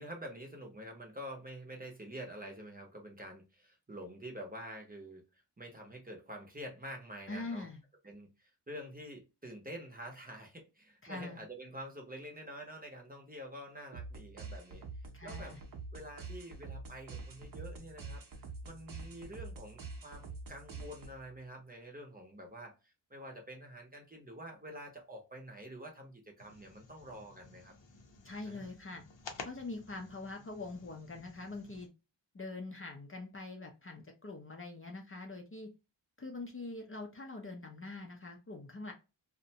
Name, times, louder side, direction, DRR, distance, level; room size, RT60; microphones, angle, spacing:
voice 1, 0.0-7.7 8.0-14.9 15.2-15.6 15.9-18.2 18.6-27.7 28.4-28.7, equal, 20° right, 1 dB, 0.7 m, -47 dB
voice 2, 7.3-7.8 11.0-11.4 15.1-15.6 28.2-29.0 29.4-31.9 32.3-35.7 36.2-38.9, left 3 dB, 30° left, 2 dB, 0.5 m, -44 dB
sound 1, 13.9-21.4, right 3 dB, 50° right, 0.7 m, -46 dB
sound 2, 26.4-31.9, left 4 dB, 85° left, 0.7 m, -52 dB
2.5 x 2.1 x 2.7 m, 0.27 s
wide cardioid pair, 130°, 43 cm